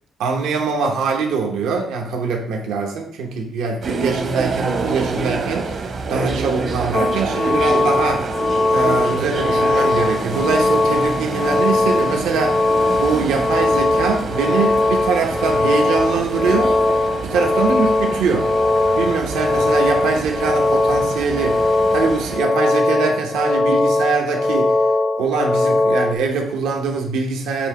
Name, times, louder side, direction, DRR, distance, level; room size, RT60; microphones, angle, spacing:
voice 1, 0.2-8.3 8.7-12.6 13.0-16.7 17.2-18.5 18.9-24.7 25.2-27.7, right 5 dB, 90° right, 2 dB, 1.0 m, -23 dB
sound 1, 3.8-22.4, right 4 dB, 55° right, 0.9 m, -28 dB
sound 2, 6.9-26.1, left 2 dB, 20° left, 0.5 m, -19 dB
7.2 x 2.8 x 4.9 m, 0.64 s
cardioid pair, 90°, 0 cm